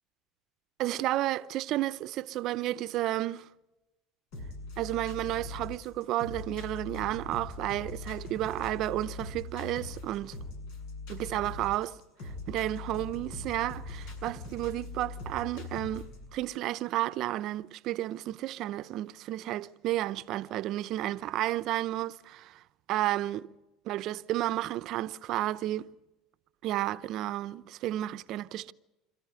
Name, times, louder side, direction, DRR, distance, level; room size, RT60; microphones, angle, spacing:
voice 1, 0.8-3.5 4.8-10.4 11.1-12.0 12.2-22.6 22.9-23.5 23.8-25.9 26.6-28.7, right 14 dB, 60° right, 0.7 m, -32 dB
sound 1, 4.3-16.3, left 3 dB, 75° left, 6.9 m, -42 dB
27.0 x 14.0 x 9.7 m
supercardioid pair, 100°, 0 cm